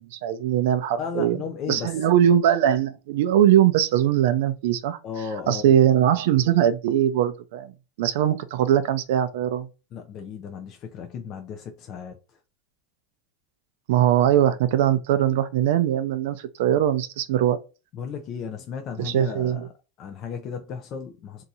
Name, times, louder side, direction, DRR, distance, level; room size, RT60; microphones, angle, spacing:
voice 1, 0.0-1.4 1.7-5.0 5.5-7.7 8.0-9.7 13.9-17.6 19.0-19.7, right 10 dB, 70° right, 0.4 m, -21 dB
voice 2, 1.0-2.0 5.0-5.7 9.9-12.2 17.9-19.7 20.0-21.4, left 6 dB, 35° left, 0.4 m, -34 dB
2.7 x 2.4 x 4.0 m
supercardioid pair, 155°, 0 cm